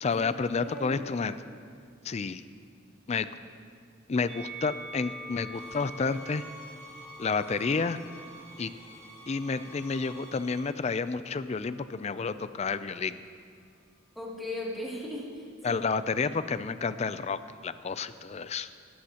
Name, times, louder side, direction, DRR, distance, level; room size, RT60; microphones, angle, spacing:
voice 1, 0.0-1.4 2.0-2.4 3.1-3.3 4.1-6.4 7.2-8.0 8.6-8.7 9.3-13.2 15.6-18.7, left 4 dB, 35° left, 13 dB, 0.4 m, -30 dB
voice 2, 0.6-1.1 14.1-15.8 16.2-16.3, left 1 dB, ahead, -6 dB, 2.5 m, -38 dB
Musical instrument, 4.3-10.7 11.5-12.5, right 1 dB, 40° right, 4.2 m, -47 dB
sound 1, 5.5-10.6, right 1 dB, 15° left, 2.6 m, -49 dB
19.0 x 14.0 x 2.9 m, 2.2 s
head